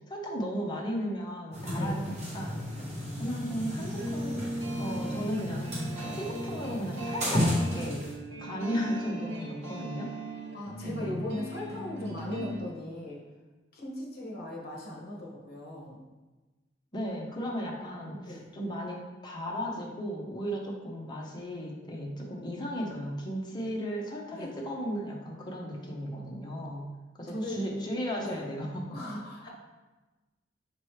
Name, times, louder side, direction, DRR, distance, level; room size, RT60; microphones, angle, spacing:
voice 1, 0.1-4.5 4.8-7.4 7.7-8.0 8.4-10.1 10.8-11.2 16.9-29.0 29.4-29.5, equal, 25° left, -2 dB, 0.7 m, -35 dB
sound 1, 1.5-8.1, left 1 dB, 40° right, 0.9 m, -33 dB
sound 2, 3.8-12.6, right 1 dB, 90° right, 0.9 m, -39 dB
voice 2, 10.5-13.2 13.7-16.0 18.2-18.5 24.3-24.5 27.3-27.7 28.2-28.4 28.9-29.5, left 1 dB, 55° left, -2 dB, 1.0 m, -38 dB
5.4 x 3.0 x 3.0 m, 1.2 s
head